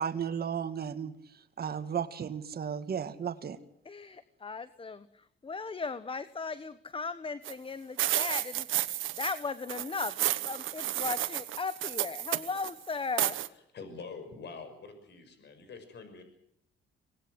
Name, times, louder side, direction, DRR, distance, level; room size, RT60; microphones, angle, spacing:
voice 1, 0.0-3.6, right 7 dB, 50° right, 11 dB, 2.1 m, -34 dB
voice 2, 3.8-13.4, left 4 dB, 25° left, 14 dB, 1.1 m, -37 dB
sound 1, 7.4-7.5 8.0-9.4 9.7-12.7 13.2-13.5, right 14 dB, 80° right, 1.3 m, -32 dB
voice 3, 13.7-16.2, left 4 dB, 60° left, 9 dB, 6.3 m, -45 dB
25.0 x 19.5 x 8.0 m, 0.70 s
cardioid pair, 90°, 20 cm